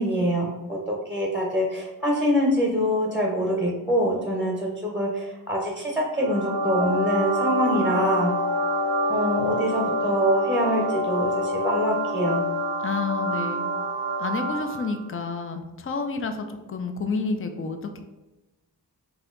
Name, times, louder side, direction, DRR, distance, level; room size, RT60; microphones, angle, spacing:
voice 1, 0.0-8.3 9.1-12.4, equal, 5° right, -1 dB, 0.7 m, -25 dB
sound 1, 6.2-15.0, equal, 75° right, 0.6 m, -26 dB
voice 2, 12.8-13.7 14.2-18.0, left 4 dB, 35° left, 6 dB, 0.5 m, -30 dB
3.9 x 2.8 x 3.8 m, 1.1 s
wide cardioid pair, 70°, 40 cm